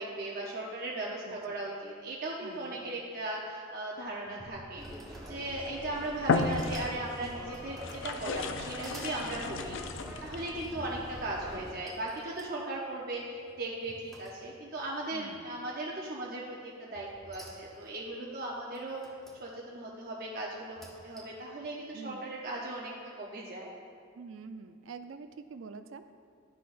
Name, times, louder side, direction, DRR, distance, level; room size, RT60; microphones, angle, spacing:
voice 1, 0.0-4.8 5.3-9.8 10.2-19.1 19.4-20.8 21.0-23.7, right 2 dB, 45° right, -3 dB, 0.7 m, -38 dB
voice 2, 1.3-1.6 2.4-3.0 4.3-4.6 9.2-9.5 10.7-10.9 15.1-15.5 21.9-22.3 24.1-26.1, right 4 dB, 70° right, 10 dB, 0.4 m, -47 dB
sound 1, 4.0-5.9 6.4-7.0 7.4-8.1 8.5-9.2 10.6-11.1 11.9-14.8 15.1-15.6 16.9-18.0 18.7-19.4 20.6-21.5, equal, ahead, 0.9 m, -51 dB
sound 2, 4.8-11.7, equal, 20° right, 1.8 m, -45 dB
sound 3, 5.6-5.8 6.2-7.2 7.8-10.6, left 4 dB, 60° left, 0.4 m, -33 dB
12.0 x 6.0 x 2.5 m, 2.3 s
head